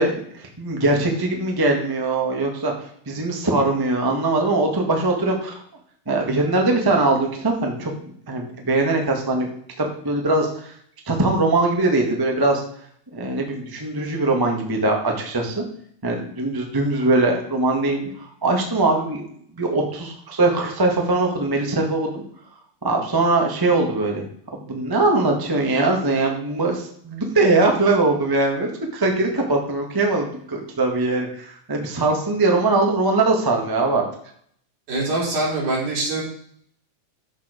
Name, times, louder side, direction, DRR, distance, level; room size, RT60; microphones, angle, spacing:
voice 1, 0.0-2.7 3.1-5.6 6.1-7.9 8.3-9.5 9.8-10.7 11.0-12.6 13.1-15.6 16.0-18.0 18.4-19.2 19.5-22.2 22.8-24.2 24.5-34.0, right 2 dB, 15° right, 1 dB, 0.7 m, -21 dB
voice 2, 34.9-36.2, right 2 dB, 75° right, -5 dB, 5.0 m, -23 dB
12.5 x 4.8 x 5.0 m, 0.63 s
omnidirectional pair, 3.6 m